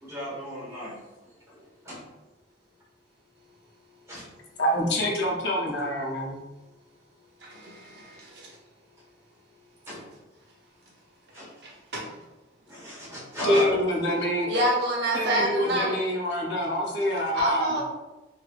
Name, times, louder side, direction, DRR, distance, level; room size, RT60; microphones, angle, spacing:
voice 1, 0.0-0.9 1.5-1.6 1.9-2.0 4.1-4.2 9.9-10.0 11.3-11.5 12.7-13.8, equal, 15° right, -9 dB, 1.3 m, -34 dB
voice 2, 4.6-6.4 13.4-14.5 15.1-17.8, equal, 65° left, -2 dB, 0.7 m, -26 dB
voice 3, 7.4-8.6 11.6-12.1 14.5-16.0 17.3-17.8, right 1 dB, 60° right, -3 dB, 0.8 m, -27 dB
3.1 x 2.8 x 2.5 m, 1.0 s
head